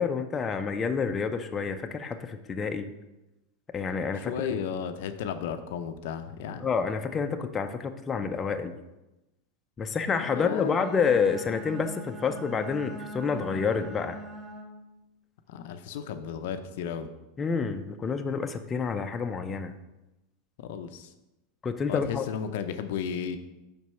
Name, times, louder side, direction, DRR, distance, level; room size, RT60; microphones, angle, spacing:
voice 1, 0.0-2.9 3.7-4.6 6.6-8.8 9.8-14.2 17.4-19.7 21.6-22.2, left 5 dB, 20° left, 6 dB, 0.5 m, -28 dB
voice 2, 4.1-6.7 10.2-10.8 15.5-17.1 20.6-21.1 21.9-23.4, left 8 dB, 70° left, 8 dB, 0.5 m, -34 dB
Bowed string instrument, 10.4-14.9, right 1 dB, 15° right, 1.3 m, -42 dB
5.2 x 4.6 x 5.5 m, 0.98 s
hypercardioid pair, 115°, 0 cm